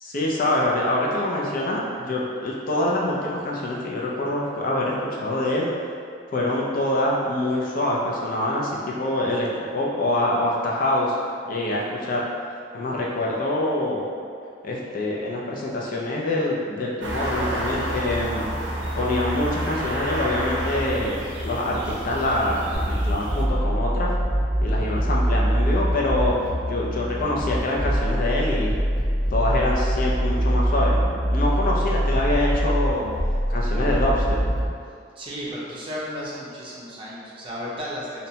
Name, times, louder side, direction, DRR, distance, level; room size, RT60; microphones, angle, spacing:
voice 1, 0.0-5.7 6.3-9.5 9.7-11.1 11.5-12.2 12.7-14.1 14.6-18.5 19.0-24.2 24.6-26.3 26.7-28.8 29.3-31.0 31.3-33.1 33.5-34.4, left 1 dB, 50° left, -3 dB, 0.4 m, -25 dB
sound 1, 17.0-23.4, right 1 dB, 85° right, 0.5 m, -29 dB
sound 2, 22.7-34.7, equal, 70° left, 1.0 m, -23 dB
voice 2, 35.2-38.3, equal, 30° right, -6 dB, 0.5 m, -34 dB
2.7 x 2.1 x 2.7 m, 2.3 s
head